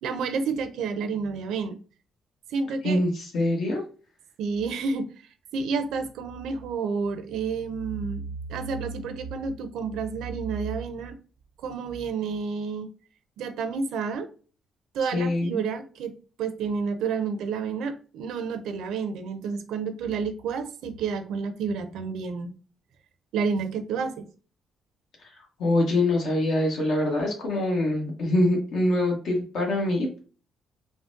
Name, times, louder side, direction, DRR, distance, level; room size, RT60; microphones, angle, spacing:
voice 1, 0.0-1.8 2.5-3.0 4.4-5.1 5.5-11.1 11.6-12.9 13.4-14.3 14.9-22.5 23.3-24.2, right 5 dB, 85° right, 8 dB, 0.4 m, -30 dB
voice 2, 2.8-3.8 15.1-15.6 25.6-30.2, left 1 dB, 70° left, 0 dB, 1.0 m, -24 dB
3.6 x 2.0 x 2.5 m, 0.38 s
cardioid pair, 90°, 0 cm